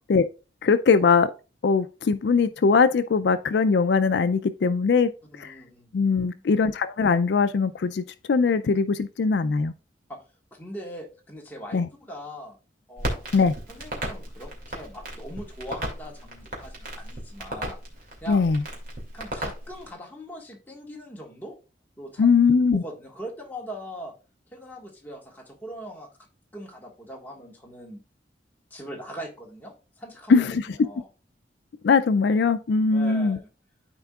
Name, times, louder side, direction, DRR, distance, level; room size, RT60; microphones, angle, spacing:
voice 1, 0.6-1.3 1.6-5.1 5.4-5.5 5.9-9.7 11.7-11.9 13.3-13.5 18.3-18.6 22.2-22.8 30.3-30.7 31.8-33.4, left 5 dB, 70° left, 0.4 m, -21 dB
voice 2, 5.3-6.6 10.1-10.2 10.5-12.6 12.9-13.4 13.7-17.8 18.2-18.4 19.1-21.5 22.0-22.3 22.7-24.1 24.5-26.1 26.5-28.0 28.7-31.1 32.9-33.5, equal, 10° left, 1.6 m, -41 dB
Crackle, 13.0-19.9, right 1 dB, 50° right, 2.3 m, -35 dB
12.5 x 4.4 x 2.4 m
head